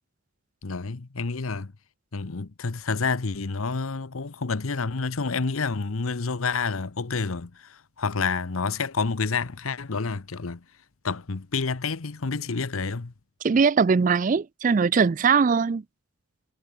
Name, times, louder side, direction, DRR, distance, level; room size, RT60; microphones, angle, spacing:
voice 1, 0.6-1.7 2.1-10.6 11.0-13.1, left 4 dB, 90° left, 0.9 m, -29 dB
voice 2, 13.4-15.8, right 5 dB, 40° right, 0.3 m, -21 dB
head